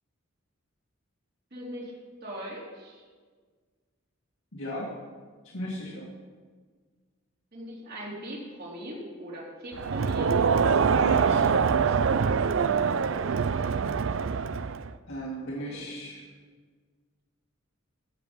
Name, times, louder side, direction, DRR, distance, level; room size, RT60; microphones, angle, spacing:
voice 1, 1.5-1.9 2.2-3.0 7.5-10.3 15.6-15.9, equal, 50° right, -4 dB, 3.6 m, -40 dB
voice 2, 4.5-4.9 5.4-6.1 10.9-12.0 15.1-16.2, right 1 dB, 75° left, -4 dB, 2.1 m, -36 dB
Crowd, 9.8-14.9, right 6 dB, 70° right, 0.4 m, -24 dB
15.5 x 7.0 x 5.5 m, 1.5 s
head